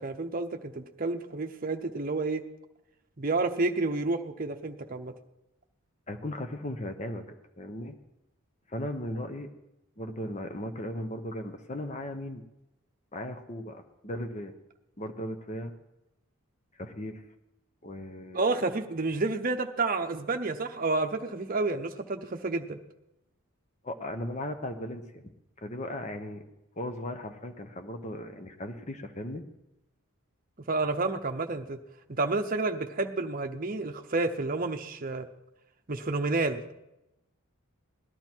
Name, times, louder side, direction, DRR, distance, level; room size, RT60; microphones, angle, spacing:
voice 1, 0.0-2.4 3.2-5.1 18.3-22.8 30.7-31.8 32.1-35.3 35.9-36.6, right 3 dB, 40° right, 5 dB, 0.8 m, -30 dB
voice 2, 6.1-7.2 7.6-8.0 8.7-9.5 10.0-12.4 13.1-14.5 15.0-15.7 16.8-17.2 17.8-18.6 23.8-25.3 25.6-26.4 26.8-29.4, left 1 dB, 30° left, 7 dB, 1.0 m, -37 dB
18.0 x 11.5 x 4.5 m, 0.91 s
head